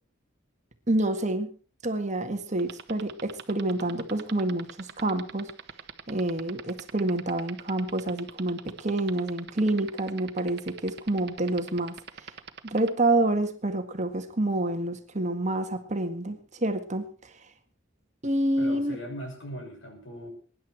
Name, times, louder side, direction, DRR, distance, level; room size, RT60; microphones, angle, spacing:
voice 1, 0.9-1.5 1.8-5.5 6.1-12.3 12.7-17.3 18.2-19.0, right 1 dB, 35° right, 7 dB, 1.8 m, -28 dB
sound 1, 2.6-12.9, right 7 dB, 55° right, 1.3 m, -41 dB
voice 2, 18.6-20.3, equal, 65° left, 3 dB, 6.5 m, -39 dB
23.5 x 11.0 x 4.6 m, 0.39 s
head